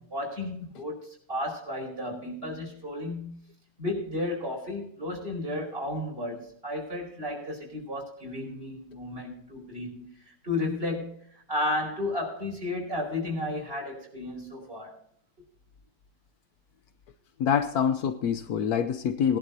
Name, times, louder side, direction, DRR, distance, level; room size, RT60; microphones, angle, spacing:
voice 1, 0.0-3.4 3.8-15.0, left 2 dB, 40° right, 0 dB, 5.0 m, -33 dB
voice 2, 17.4-19.4, left 8 dB, 80° left, 9 dB, 1.3 m, -25 dB
21.0 x 11.0 x 2.7 m, 0.63 s
omnidirectional pair, 1.6 m